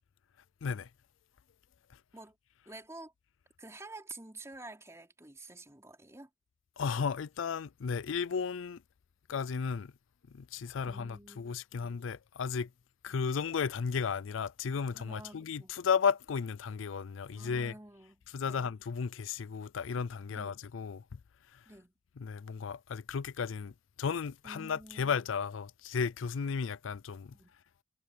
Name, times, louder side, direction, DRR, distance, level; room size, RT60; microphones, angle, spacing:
voice 1, 2.7-3.1 3.6-6.3 10.9-12.0 13.1-13.2 15.0-15.7 17.3-18.2 18.5-18.7 20.3-20.6 21.7-21.9 24.4-25.1 27.3-27.5, right 2 dB, 15° right, 3.5 m, -50 dB
voice 2, 6.8-8.8 9.3-9.9 10.3-12.7 13.0-17.7 18.3-21.2 21.5-21.6 22.2-27.4, left 6 dB, 90° left, 0.5 m, -34 dB
head